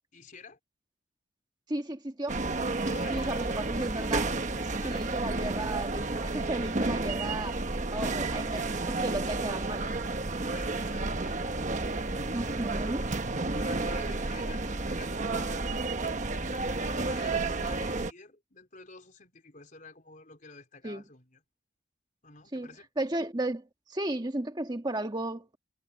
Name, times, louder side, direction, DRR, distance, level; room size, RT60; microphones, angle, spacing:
voice 1, 0.1-0.6 2.8-3.7 4.5-5.0 10.5-11.5 12.5-13.1 13.6-15.9 16.8-21.4 22.2-22.9, left 4 dB, 45° left, 4.2 m, -50 dB
voice 2, 1.7-2.4 3.1-4.3 4.8-7.6 7.9-9.9 12.3-13.1 20.8-21.0 22.5-22.7 23.0-25.6, right 1 dB, 25° right, 1.6 m, -34 dB
sound 1, 2.3-18.1, right 3 dB, 40° right, 1.2 m, -31 dB
head